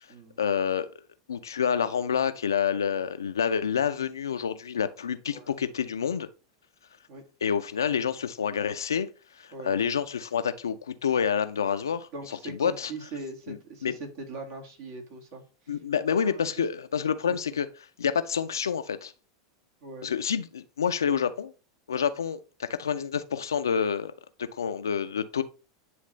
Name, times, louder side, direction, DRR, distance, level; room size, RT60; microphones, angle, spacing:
voice 1, 0.4-0.9 1.3-6.3 7.4-9.1 9.4-12.9 13.5-13.9 15.7-17.7 18.0-19.1 20.0-21.5 21.9-24.1 24.4-25.4, left 7 dB, 80° left, 0.5 m, -28 dB
voice 2, 12.1-15.8 16.1-16.6 17.2-17.4 19.8-20.1, right 3 dB, 55° right, 1.9 m, -41 dB
9.3 x 3.2 x 3.1 m
figure-of-eight pair, 85°, 2 cm